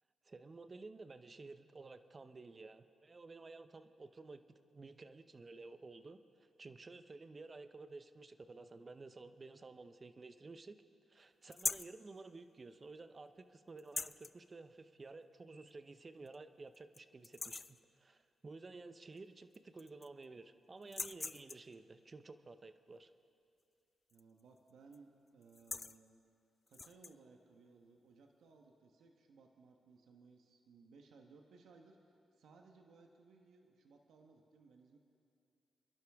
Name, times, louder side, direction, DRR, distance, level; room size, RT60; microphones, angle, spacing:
voice 1, 0.2-10.8 11.1-23.1, right 3 dB, 35° right, 10 dB, 0.8 m, -53 dB
sound 1, 11.5-12.0 13.8-14.3 15.7-15.8 16.3-16.4 16.7-17.0 17.2-17.8 19.2-19.3 19.5-20.2 20.8-21.7 24.1-24.4 24.7-25.0 25.4-26.0 26.7-27.1, left 4 dB, 35° left, 0.3 m, -42 dB
voice 2, 24.1-26.2 26.7-35.0, right 4 dB, 80° right, 3 dB, 1.2 m, -62 dB
27.5 x 11.5 x 3.6 m, 2.5 s
cardioid pair, 70°, 0 cm